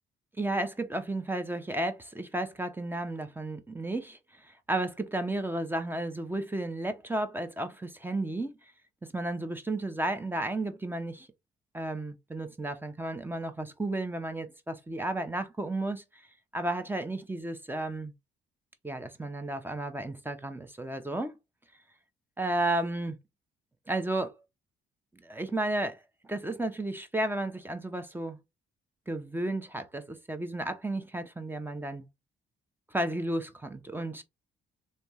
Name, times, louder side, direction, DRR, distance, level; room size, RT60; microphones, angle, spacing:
voice 1, 0.4-4.2 4.7-8.5 9.1-11.3 11.7-16.0 16.5-18.1 18.8-21.3 22.4-23.2 23.9-24.3 25.2-26.0 26.3-28.4 29.1-32.1 32.9-34.2, right 2 dB, 10° right, 0.7 m, -33 dB
3.3 x 2.7 x 3.0 m
cardioid pair, 90°, 20 cm